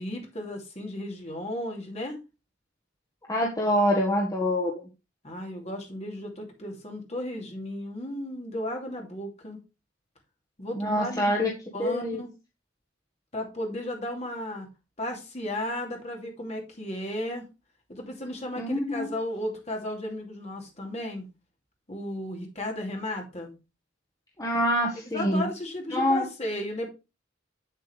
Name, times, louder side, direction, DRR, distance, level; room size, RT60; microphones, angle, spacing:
voice 1, 0.0-2.2 5.2-9.6 10.6-11.3 11.7-12.3 13.3-14.7 15.0-17.4 17.9-21.3 21.9-23.5 25.1-26.9, left 1 dB, 35° left, 1 dB, 2.8 m, -34 dB
voice 2, 3.3-4.7 10.7-11.5 11.8-12.2 18.6-19.1 24.4-25.4 25.9-26.2, equal, 20° left, -1 dB, 1.4 m, -25 dB
8.1 x 7.8 x 3.3 m, 0.27 s
head